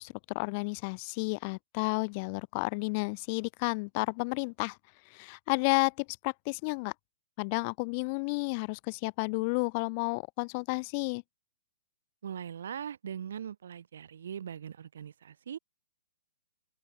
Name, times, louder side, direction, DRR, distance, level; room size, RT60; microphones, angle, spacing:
voice 1, 0.0-4.8 5.1-6.9 7.4-11.2, left 32 dB, 40° left, 0.4 m, -32 dB
voice 2, 12.2-15.6, right 8 dB, 70° right, 2.5 m, -40 dB
open air
hypercardioid pair, 135°, 0 cm